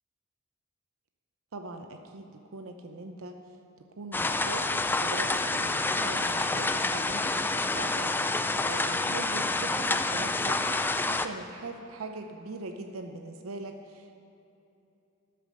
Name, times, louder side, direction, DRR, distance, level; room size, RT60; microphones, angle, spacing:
voice 1, 1.5-3.4 4.0-14.2, right 2 dB, 85° right, 5 dB, 0.7 m, -41 dB
sound 1, 4.1-11.3, left 2 dB, 10° left, 0.3 m, -28 dB
12.5 x 6.8 x 6.7 m, 2.9 s
head